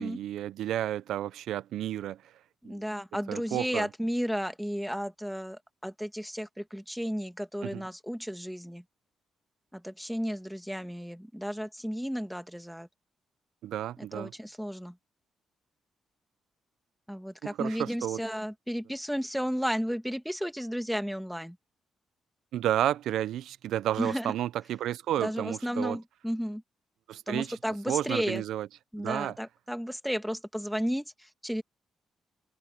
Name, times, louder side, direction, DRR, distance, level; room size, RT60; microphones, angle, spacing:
voice 1, 0.0-2.3 2.6-2.8 3.3-3.9 7.6-7.8 13.6-14.3 17.4-18.2 22.5-26.0 27.1-27.6 27.9-28.7 29.0-29.4, right 12 dB, 90° right, 0.5 m, -31 dB
voice 2, 2.6-8.8 9.7-12.9 14.0-15.0 17.1-21.6 24.0-24.3 25.2-26.6 27.3-28.4 28.9-31.6, equal, ahead, 1.6 m, -33 dB
cardioid pair, 140°, 0 cm